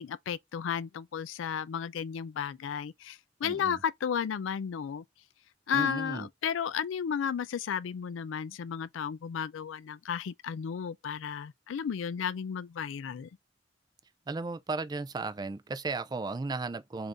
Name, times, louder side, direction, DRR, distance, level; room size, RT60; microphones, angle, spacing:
voice 1, 0.0-5.0 5.7-13.3, left 7 dB, 90° left, 0.4 m, -33 dB
voice 2, 3.4-3.8 5.7-6.3 14.3-17.1, right 3 dB, 20° right, 0.3 m, -35 dB
3.8 x 2.6 x 3.4 m
head